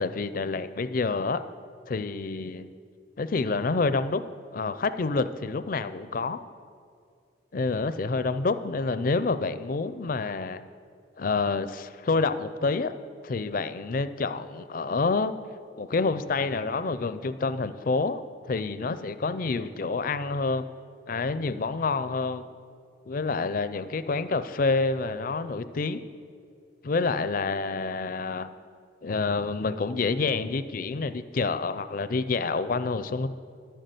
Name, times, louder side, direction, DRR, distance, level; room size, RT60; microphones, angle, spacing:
voice 1, 0.0-1.4 1.9-2.7 3.2-4.2 4.5-6.4 7.5-10.6 11.2-12.9 13.2-15.3 15.8-18.2 18.5-20.7 21.1-22.4 23.1-26.0 26.8-28.5 29.0-33.3, left 3 dB, 45° left, 12 dB, 0.4 m, -28 dB
11.0 x 6.6 x 7.8 m, 2.3 s
head